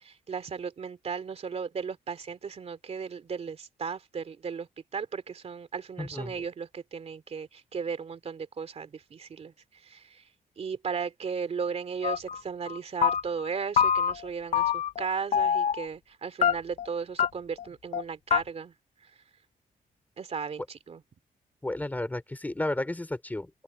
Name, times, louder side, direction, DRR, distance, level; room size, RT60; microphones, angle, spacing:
voice 1, 0.0-4.7 4.9-9.5 9.8-10.2 10.6-18.7 20.2-21.0, right 6 dB, 45° right, 2.8 m, -36 dB
voice 2, 6.0-6.4 21.6-23.6, left 1 dB, 10° left, 2.7 m, -33 dB
sound 1, 12.0-12.4 12.7-13.5 13.8-14.3 14.5-15.1 15.3-15.9 16.4-16.9 17.2-17.3 17.6-17.7 17.9-18.0 18.3-18.4, left 8 dB, 50° left, 0.5 m, -25 dB
open air
wide cardioid pair, 160°, 15 cm